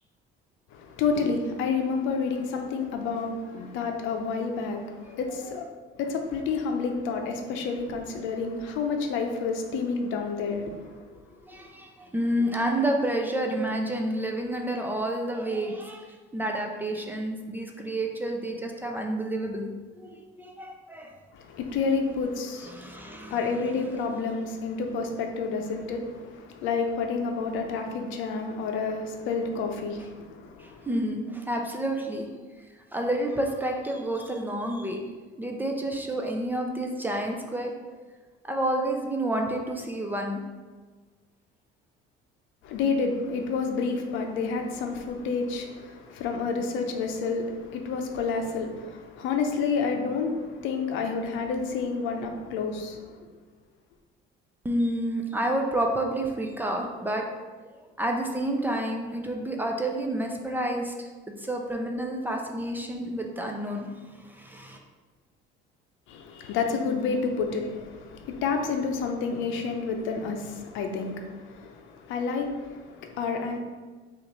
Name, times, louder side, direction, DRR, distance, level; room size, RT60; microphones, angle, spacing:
voice 1, 0.7-5.6 6.0-10.7 21.3-30.9 42.6-53.0 66.1-73.6, left 4 dB, 75° left, 4 dB, 0.6 m, -29 dB
voice 2, 11.4-16.1 16.3-19.7 20.0-21.1 22.6-23.6 30.6-32.3 32.9-35.0 35.4-37.7 38.4-40.4 54.6-57.3 58.0-61.1 61.4-64.8, right 1 dB, 10° right, 1 dB, 0.4 m, -29 dB
6.0 x 2.5 x 3.0 m, 1.4 s
cardioid pair, 140°, 20 cm